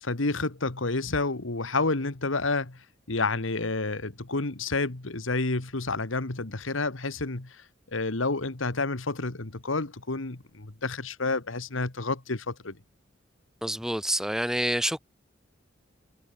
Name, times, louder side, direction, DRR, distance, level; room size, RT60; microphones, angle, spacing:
voice 1, 0.0-7.6 7.9-12.8, left 3 dB, 85° left, 1.7 m, -29 dB
voice 2, 13.6-15.0, right 1 dB, 5° right, 1.6 m, -27 dB
head